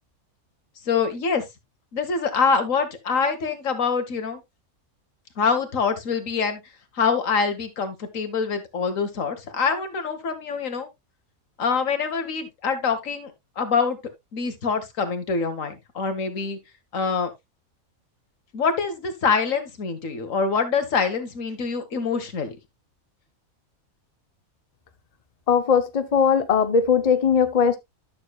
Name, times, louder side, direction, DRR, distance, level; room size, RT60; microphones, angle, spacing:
voice 1, 0.9-1.4 1.9-4.4 5.4-6.6 7.0-10.9 11.6-13.3 13.6-14.0 14.3-16.6 16.9-17.3 18.5-22.6, left 5 dB, 65° left, 1.8 m, -25 dB
voice 2, 25.5-27.8, left 6 dB, 35° left, 0.7 m, -19 dB
12.5 x 6.6 x 2.3 m
omnidirectional pair, 1.5 m